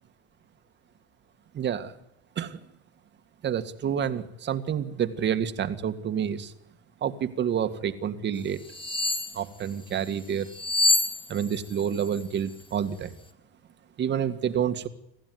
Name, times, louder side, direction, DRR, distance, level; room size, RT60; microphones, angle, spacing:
voice 1, 1.5-1.9 2.4-2.6 3.4-6.5 7.0-8.6 9.3-10.5 11.3-13.1 14.0-14.9, right 8 dB, 35° right, 9 dB, 2.0 m, -28 dB
sound 1, 8.7-9.4 10.5-11.7 12.0-12.2, left 2 dB, 15° left, 3.2 m, -25 dB
27.0 x 15.0 x 9.5 m, 0.89 s
supercardioid pair, 115°, 32 cm